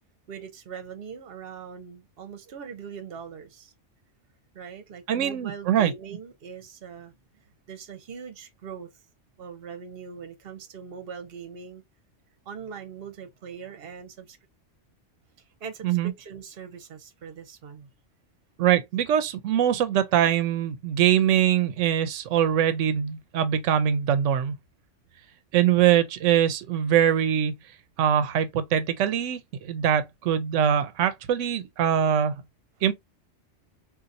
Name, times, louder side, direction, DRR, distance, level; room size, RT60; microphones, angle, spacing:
voice 1, 0.3-3.7 4.5-7.1 7.7-8.9 9.4-11.8 12.5-14.4 15.6-17.9, right 6 dB, 55° right, 1.0 m, -41 dB
voice 2, 5.1-5.9 15.8-16.1 18.6-24.5 25.5-27.6 28.0-32.4 32.8-32.9, right 9 dB, 85° right, 0.9 m, -23 dB
3.9 x 2.6 x 2.5 m
omnidirectional pair, 1.2 m